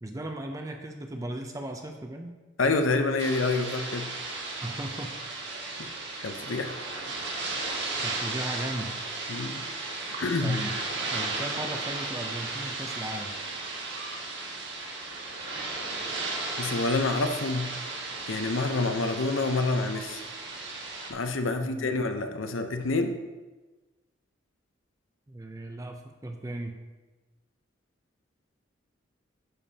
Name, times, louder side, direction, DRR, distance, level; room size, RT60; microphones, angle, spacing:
voice 1, 0.0-2.3 4.6-5.1 8.0-9.0 10.4-10.8 11.1-13.3 21.6-21.9 25.3-26.8, right 1 dB, 15° right, 4 dB, 0.5 m, -36 dB
voice 2, 2.6-4.1 6.2-6.7 9.3-9.6 10.2-10.6 16.6-17.7 18.3-20.2 21.1-23.1, left 3 dB, 80° left, 7 dB, 0.7 m, -27 dB
sound 1, 3.2-21.1, right 3 dB, 60° right, 1.5 m, -35 dB
11.0 x 6.9 x 2.8 m, 1.2 s
head